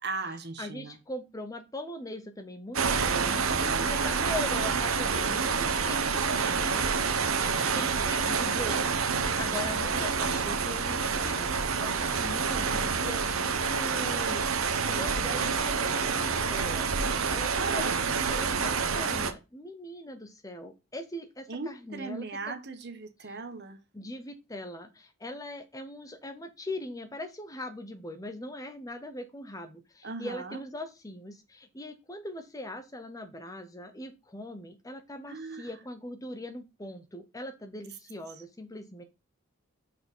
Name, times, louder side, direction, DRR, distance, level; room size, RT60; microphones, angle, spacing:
voice 1, 0.0-1.0 3.4-4.3 7.2-7.9 17.6-18.1 21.5-23.8 30.0-30.6 35.3-35.7, right 3 dB, 50° right, 1.2 m, -38 dB
voice 2, 0.6-3.5 3.8-6.9 7.7-22.3 23.2-23.3 23.9-39.0, left 1 dB, 15° left, 0.7 m, -41 dB
sound 1, 2.7-19.3, right 5 dB, 70° right, 0.9 m, -28 dB
6.4 x 4.7 x 5.3 m
head